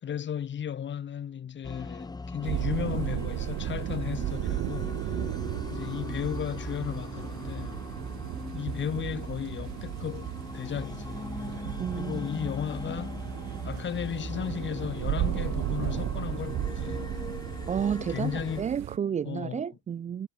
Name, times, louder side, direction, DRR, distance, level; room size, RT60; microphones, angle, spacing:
voice 1, 0.0-5.3 5.7-7.8 8.5-11.2 12.0-13.2 13.6-17.0 18.1-18.7 19.2-19.7, left 9 dB, 40° left, 3.0 m, -35 dB
sound 1, 1.6-18.6, left 3 dB, 15° left, 1.5 m, -40 dB
sound 2, 2.4-19.0, right 16 dB, 65° right, 1.9 m, -35 dB
voice 2, 11.8-12.5 17.7-20.3, right 8 dB, 25° right, 0.4 m, -31 dB
cardioid pair, 135°, 29 cm